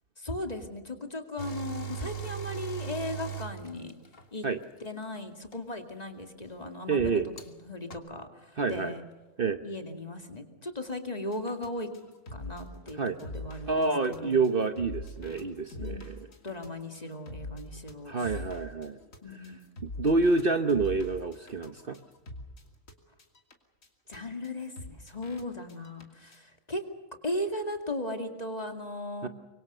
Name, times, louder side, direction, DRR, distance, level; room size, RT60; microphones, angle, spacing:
voice 1, 0.2-3.9 4.3-4.5 4.8-9.0 9.6-11.9 12.3-14.4 15.8-16.1 16.4-18.4 19.2-19.6 24.1-26.8 27.2-29.3, left 1 dB, 30° left, 5 dB, 2.4 m, -37 dB
sound 1, 1.4-4.3 5.5-5.6 7.4-7.5 7.9-8.0, right 7 dB, 45° left, 1.8 m, -38 dB
voice 2, 6.9-7.3 8.6-8.9 9.4-9.6 13.0-13.2 13.7-16.1 18.1-19.0 19.8-22.0 29.2-29.3, right 3 dB, 45° right, 8 dB, 1.1 m, -27 dB
sound 2, 11.3-22.9 23.2-23.5 23.8-23.9 24.1-24.2 24.4-24.5 24.8-25.4 25.7-26.0 26.3-26.4, left 2 dB, 75° left, 3.1 m, -43 dB
25.0 x 23.5 x 6.7 m, 1.2 s
omnidirectional pair, 1.4 m